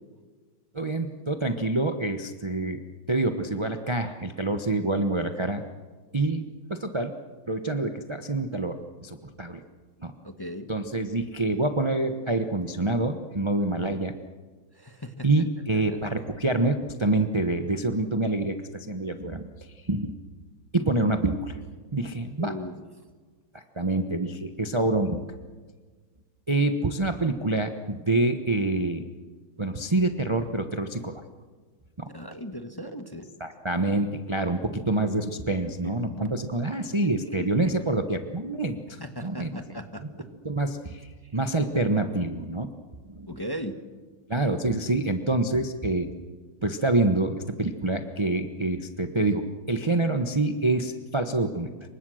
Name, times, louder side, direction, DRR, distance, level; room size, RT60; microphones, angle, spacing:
voice 1, 0.7-2.8 3.1-5.6 6.1-6.4 6.7-7.2 7.5-9.6 10.0-10.1 10.7-14.1 15.2-19.5 19.8-20.1 20.7-21.6 21.9-22.5 23.5-25.2 26.5-29.0 29.6-31.2 32.0-32.1 33.4-39.5 40.4-42.7 43.0-43.3 44.3-46.1 46.6-51.7, right 2 dB, 20° right, 6 dB, 0.8 m, -26 dB
voice 2, 10.2-10.7 14.7-15.3 22.4-22.7 32.1-33.3 35.8-36.4 37.3-37.9 39.0-40.0 43.3-43.8, equal, 15° left, 6 dB, 1.2 m, -37 dB
28.0 x 24.5 x 6.5 m, 1.4 s
omnidirectional pair, 2.3 m